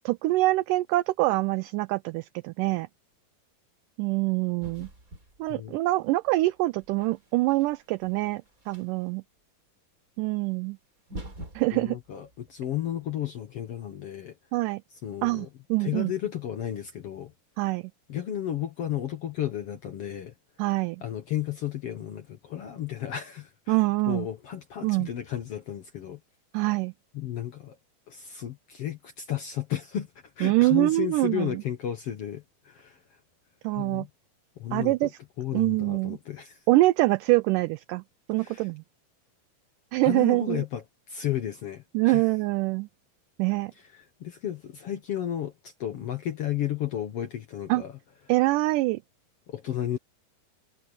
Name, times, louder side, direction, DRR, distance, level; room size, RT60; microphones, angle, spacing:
voice 1, 0.1-2.9 4.0-4.9 5.4-9.2 10.2-10.8 11.6-12.0 14.5-14.8 15.2-16.1 17.6-17.9 20.6-21.0 23.7-24.3 24.8-25.1 26.5-26.9 30.4-31.5 33.6-34.1 34.7-35.1 35.5-36.2 36.7-38.0 38.3-38.8 39.9-40.6 41.9-42.9 43.4-43.7 47.7-47.8 48.3-49.0, right 20 dB, 80° right, 2.0 m, -25 dB
sound 1, 4.6-5.8 6.6-9.1 10.5-10.6 11.0-13.2, right 1 dB, 20° right, 4.7 m, -45 dB
voice 2, 11.7-14.3 15.0-15.5 15.8-17.3 18.1-20.3 21.0-23.8 24.1-26.2 27.1-27.8 28.1-30.1 30.4-33.0 33.7-34.1 34.6-35.1 35.4-36.6 38.4-38.7 40.0-42.2 43.9-47.9 49.5-50.0, left 11 dB, 60° left, 1.7 m, -33 dB
omnidirectional pair, 4.0 m